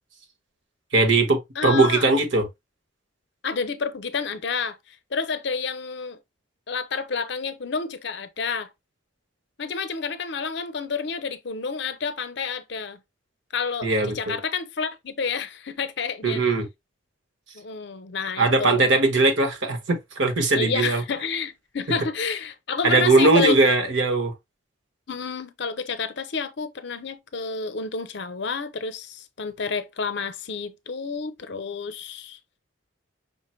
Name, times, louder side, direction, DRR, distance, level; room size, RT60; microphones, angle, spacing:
voice 1, 0.9-2.4 13.8-14.4 16.2-16.7 18.4-21.0 22.8-24.3, right 3 dB, 65° right, 1.1 m, -20 dB
voice 2, 1.6-2.0 3.4-6.2 6.7-8.7 9.6-13.0 13.5-16.4 17.5-18.9 20.5-23.6 25.1-32.4, left 5 dB, 55° left, 0.6 m, -29 dB
5.6 x 2.1 x 4.3 m
head